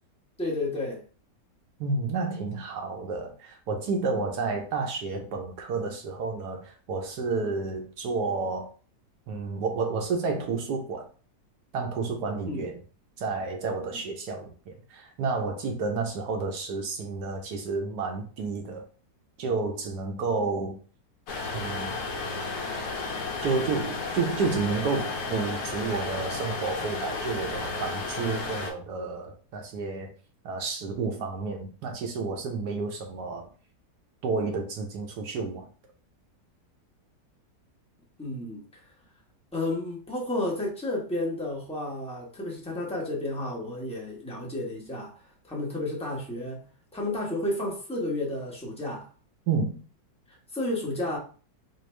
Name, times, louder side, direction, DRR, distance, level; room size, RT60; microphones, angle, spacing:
voice 1, 0.4-1.0 12.5-12.7 13.9-14.0 38.2-38.6 39.5-46.6 46.9-49.1 50.5-51.2, left 1 dB, 5° left, 0.6 m, -31 dB
voice 2, 1.8-8.7 9.3-11.1 11.7-12.8 13.2-18.9 19.4-20.8 21.5-21.9 23.4-30.1 30.4-33.5 34.2-35.7 49.5-49.8, right 4 dB, 70° right, 1.2 m, -30 dB
sound 1, 21.3-28.7, left 3 dB, 65° left, 1.2 m, -33 dB
4.3 x 2.4 x 3.1 m
omnidirectional pair, 2.0 m